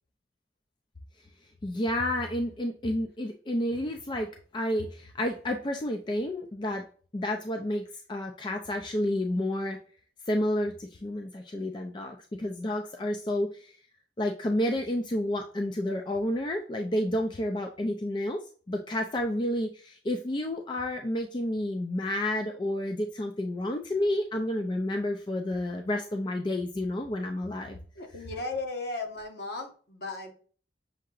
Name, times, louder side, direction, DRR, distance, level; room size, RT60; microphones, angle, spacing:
voice 1, 1.6-6.9 7.1-9.8 10.3-13.7 14.2-27.8, left 1 dB, 25° left, 3 dB, 0.4 m, -30 dB
voice 2, 27.7-30.3, left 3 dB, 60° left, 2 dB, 1.0 m, -36 dB
6.4 x 2.8 x 2.4 m, 0.41 s
head